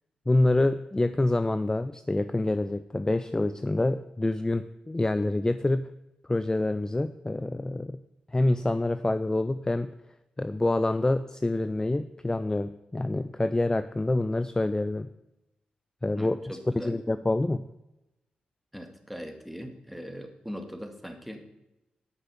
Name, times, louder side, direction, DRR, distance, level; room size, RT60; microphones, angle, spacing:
voice 1, 0.3-5.9 6.3-8.0 8.3-9.9 10.4-15.1 16.0-16.4 16.7-17.7, left 2 dB, 20° left, 12 dB, 0.5 m, -26 dB
voice 2, 16.2-16.9 18.7-21.6, equal, ahead, 5 dB, 2.0 m, -40 dB
9.9 x 5.8 x 7.0 m, 0.92 s
supercardioid pair, 40°, 3 cm